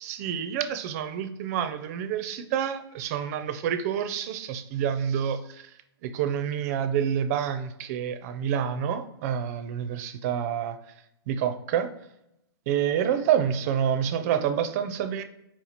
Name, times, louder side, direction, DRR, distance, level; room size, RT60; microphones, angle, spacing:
voice 1, 0.0-5.7 6.0-10.8 11.3-11.9 12.7-15.2, right 9 dB, 35° right, 10 dB, 0.4 m, -28 dB
4.5 x 2.9 x 4.0 m, 0.83 s
hypercardioid pair, 135°, 14 cm